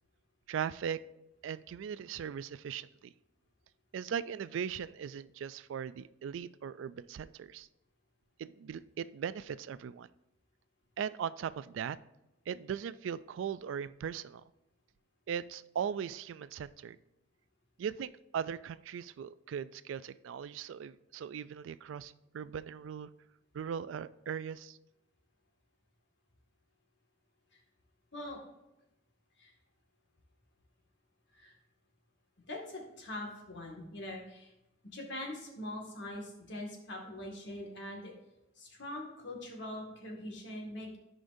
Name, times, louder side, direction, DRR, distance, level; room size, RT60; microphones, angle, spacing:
voice 1, 0.5-1.0 1.4-3.1 3.9-7.7 8.4-10.1 11.0-12.0 12.5-14.4 15.3-17.0 17.8-23.1 23.5-24.8, right 8 dB, 70° right, 16 dB, 0.3 m, -39 dB
voice 2, 32.5-34.5 34.8-38.1 38.6-41.0, left 1 dB, 65° left, 0 dB, 1.9 m, -43 dB
13.5 x 5.1 x 2.6 m, 0.93 s
head